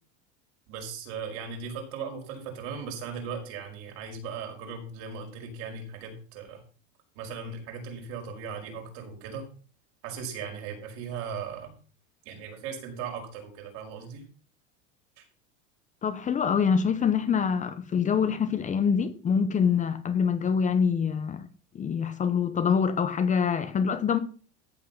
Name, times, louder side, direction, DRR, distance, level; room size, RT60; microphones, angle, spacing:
voice 1, 0.7-6.6 7.2-9.5 10.0-11.7 12.3-14.3 15.2-15.3, right 6 dB, 60° right, 5.5 m, -38 dB
voice 2, 16.0-21.5 21.7-24.2, left 6 dB, 20° left, 0.9 m, -25 dB
14.0 x 7.4 x 5.6 m
supercardioid pair, 145°, 36 cm